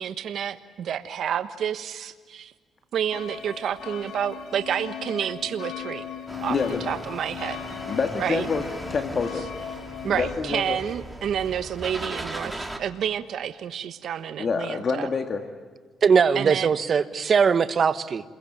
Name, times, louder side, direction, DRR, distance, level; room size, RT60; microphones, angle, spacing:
voice 1, 0.0-2.5 2.9-6.0 6.4-7.6 8.2-8.5 10.0-15.1 16.3-16.7, right 9 dB, 65° right, 9 dB, 1.3 m, -29 dB
sound 1, 3.1-10.4, left 9 dB, 65° left, 3.8 m, -37 dB
sound 2, 6.3-12.8, right 1 dB, 10° right, 3.1 m, -38 dB
voice 2, 6.5-6.8 7.9-8.6 8.9-9.4 10.0-10.8 14.4-15.4, left 5 dB, 45° left, 5 dB, 2.3 m, -27 dB
voice 3, 16.0-18.2, right 6 dB, 45° right, 12 dB, 1.5 m, -20 dB
28.5 x 22.0 x 9.0 m, 1.4 s
cardioid pair, 90°, 0 cm